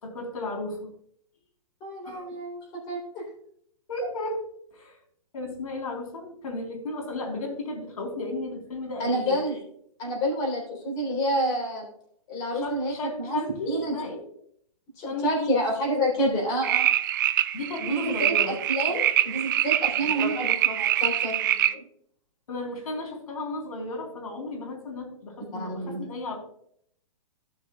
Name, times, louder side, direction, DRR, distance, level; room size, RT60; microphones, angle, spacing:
voice 1, 0.0-0.8 2.1-2.3 3.9-4.4 4.7-5.0 5.3-9.4 12.5-14.2 15.0-15.5 16.2-16.4 17.5-18.6 20.0-20.4 22.5-26.4, left 2 dB, 80° left, 2 dB, 4.2 m, -34 dB
voice 2, 1.8-2.6 2.9-3.2 9.0-9.6 10.0-11.9 12.3-13.4 13.7-13.9 15.0-16.9 17.8-21.9 25.5-26.0, equal, 25° left, -1 dB, 3.7 m, -28 dB
sound 1, 16.6-21.7, right 12 dB, 35° right, 0.4 m, -25 dB
16.0 x 6.3 x 2.4 m, 0.68 s
hypercardioid pair, 165°, 18 cm